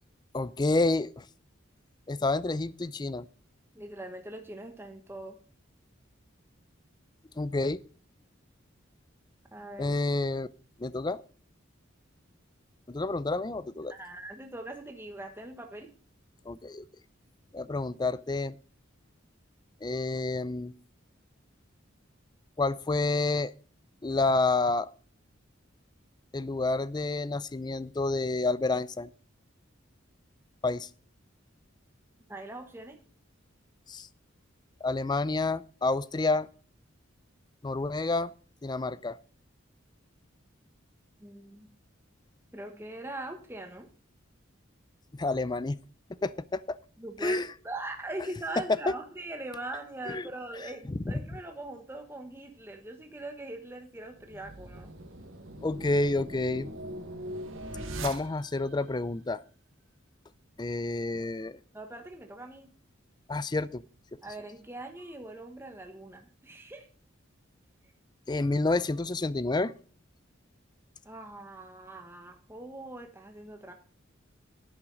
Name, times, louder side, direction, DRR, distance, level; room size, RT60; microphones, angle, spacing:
voice 1, 0.3-1.3 2.1-3.3 7.4-7.8 9.8-10.5 10.8-11.2 12.9-13.9 16.5-16.9 17.5-18.6 19.8-20.7 22.6-23.5 24.0-24.9 26.3-29.1 30.6-30.9 33.9-34.1 34.8-36.5 37.6-38.3 38.6-39.2 45.1-45.8 46.2-46.8 47.2-47.5 48.9-49.0 50.1-50.2 50.9-51.1 55.6-56.7 58.0-59.4 60.6-61.6 63.3-63.8 68.3-69.7, left 2 dB, 20° left, 18 dB, 0.4 m, -29 dB
voice 2, 3.7-5.4 9.5-10.0 13.9-15.9 32.3-33.0 41.2-41.7 42.5-43.9 47.0-54.9 61.7-62.7 64.2-66.9 71.0-73.7, right 2 dB, 10° right, 4 dB, 1.2 m, -41 dB
sound 1, 54.1-58.7, right 1 dB, 85° right, 1.7 m, -40 dB
11.0 x 8.8 x 3.9 m, 0.42 s
head